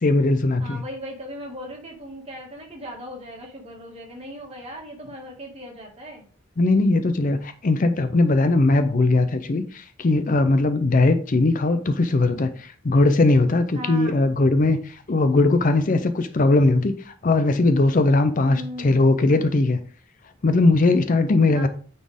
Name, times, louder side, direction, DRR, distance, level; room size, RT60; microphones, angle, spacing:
voice 1, 0.0-0.8 6.6-19.8 20.4-21.7, left 2 dB, 40° left, 10 dB, 0.5 m, -19 dB
voice 2, 0.6-6.2 13.7-14.2 18.5-19.0 21.5-21.7, equal, 30° right, -1 dB, 2.1 m, -38 dB
9.4 x 4.3 x 3.5 m, 0.42 s
head